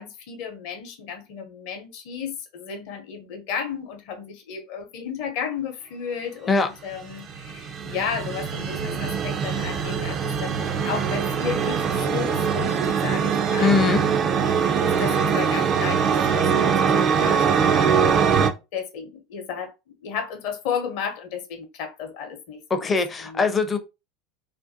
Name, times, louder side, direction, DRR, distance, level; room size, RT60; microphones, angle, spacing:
voice 1, 0.0-14.1 14.7-18.1 18.7-19.7 20.0-22.8 23.2-23.5, left 7 dB, 60° left, 0.7 m, -33 dB
sound 1, 6.9-18.5, right 6 dB, 40° right, 0.4 m, -22 dB
voice 2, 13.6-14.0 22.7-23.8, left 4 dB, 25° left, 0.5 m, -21 dB
2.5 x 2.2 x 2.5 m
hypercardioid pair, 85°, 0 cm